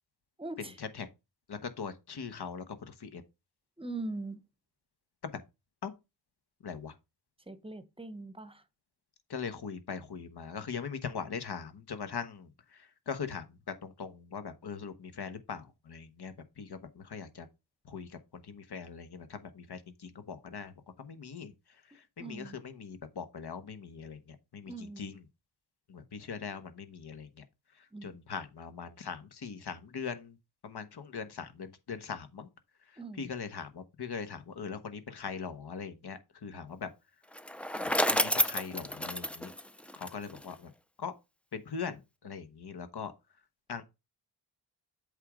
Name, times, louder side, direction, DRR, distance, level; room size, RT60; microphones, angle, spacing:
voice 1, 0.4-0.8 3.8-4.4 7.5-8.6 21.9-22.6 24.7-25.2 27.9-28.2 33.0-33.3, right 2 dB, 10° right, 0.8 m, -42 dB
voice 2, 1.5-3.2 5.2-5.3 5.8-5.9 6.6-6.9 9.3-17.5 17.8-21.5 21.9-25.2 25.9-27.3 27.8-30.4 30.6-32.5 33.2-36.9 37.8-39.5 40.0-40.7 41.0-41.1 41.5-43.1 43.7-43.8, left 6 dB, 60° left, 1.2 m, -41 dB
Bicycle, 37.3-40.5, equal, 5° left, 0.4 m, -30 dB
8.0 x 3.6 x 5.1 m
wide cardioid pair, 105°, 44 cm